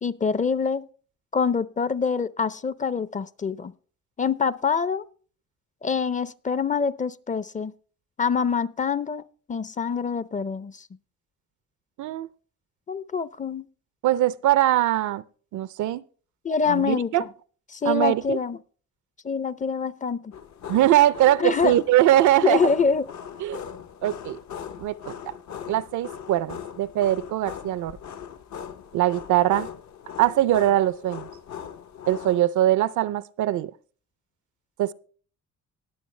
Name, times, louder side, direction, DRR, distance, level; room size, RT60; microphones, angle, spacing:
voice 1, 0.0-0.8 1.3-3.7 4.2-5.0 5.8-7.7 8.2-9.2 9.5-10.8 12.9-13.7 16.4-17.3 17.7-18.6 19.2-20.3 21.4-21.7 22.4-23.1, left 5 dB, 25° left, 0.5 m, -25 dB
voice 2, 14.0-15.2 15.5-16.0 16.7-17.2 17.8-18.4 20.7-22.6 23.4-23.6 24.0-24.4 24.8-25.1 25.7-28.0 28.9-29.7 30.2-31.3 32.1-33.7 34.8-34.9, right 13 dB, 75° right, 0.5 m, -22 dB
sound 1, 20.3-32.4, left 8 dB, 65° left, 0.8 m, -40 dB
19.0 x 6.9 x 3.2 m
cardioid pair, 90°, 30 cm